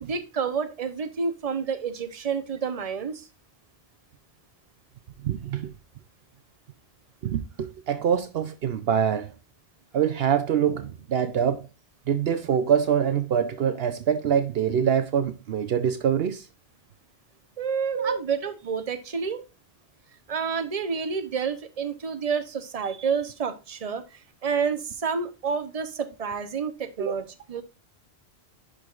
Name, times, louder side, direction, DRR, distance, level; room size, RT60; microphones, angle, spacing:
voice 1, 0.0-3.3 17.6-19.4 20.3-24.0 24.4-27.6, right 6 dB, 35° right, 0.9 m, -29 dB
voice 2, 5.2-5.7 7.2-9.3 9.9-11.7 12.1-16.5 17.9-18.2 27.0-27.1, right 8 dB, 70° right, 0.9 m, -24 dB
10.5 x 5.0 x 2.4 m
omnidirectional pair, 1.1 m